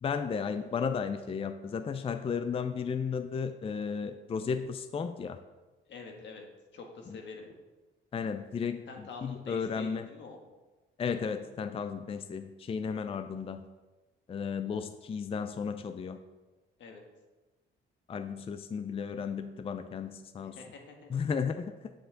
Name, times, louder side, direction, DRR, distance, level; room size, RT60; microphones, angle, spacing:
voice 1, 0.0-5.4 7.1-7.2 8.1-10.1 11.0-13.6 14.3-16.2 18.1-20.6 21.1-21.9, left 6 dB, 30° left, 9 dB, 0.4 m, -34 dB
voice 2, 5.9-6.4 6.7-7.5 8.9-10.4 16.8-17.0 20.4-21.2, left 4 dB, 65° left, 2 dB, 1.5 m, -46 dB
6.9 x 6.8 x 3.8 m, 1.2 s
cardioid pair, 90°, 20 cm